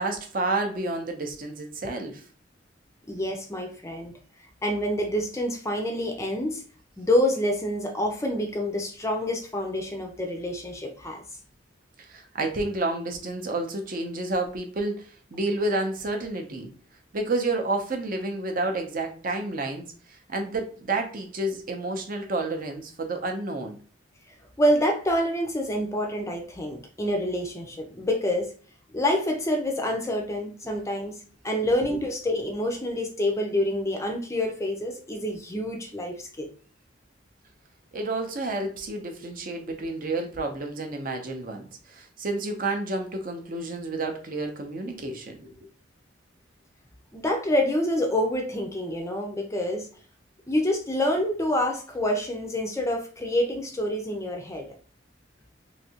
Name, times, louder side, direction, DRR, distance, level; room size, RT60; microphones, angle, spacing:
voice 1, 0.0-2.2 12.0-16.7 17.1-23.8 37.9-45.6, right 2 dB, 45° right, 3 dB, 0.6 m, -30 dB
voice 2, 3.1-4.1 4.6-6.6 7.0-11.2 24.6-28.5 28.9-31.2 31.4-36.5 47.1-49.9 50.5-54.7, left 1 dB, 15° left, 3 dB, 0.5 m, -27 dB
3.2 x 2.7 x 2.8 m, 0.42 s
head